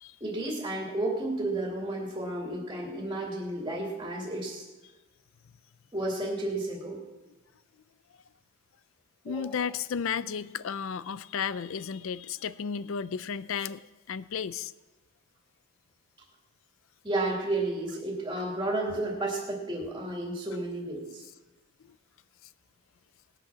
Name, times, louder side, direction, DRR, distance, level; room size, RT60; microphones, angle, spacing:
voice 1, 0.2-4.6 5.9-7.0 9.3-9.6 17.0-21.2, right 2 dB, 20° right, -2 dB, 2.5 m, -32 dB
voice 2, 9.2-13.8 14.1-14.7, left 7 dB, 70° left, 16 dB, 0.4 m, -33 dB
19.0 x 8.6 x 6.2 m, 1.2 s
head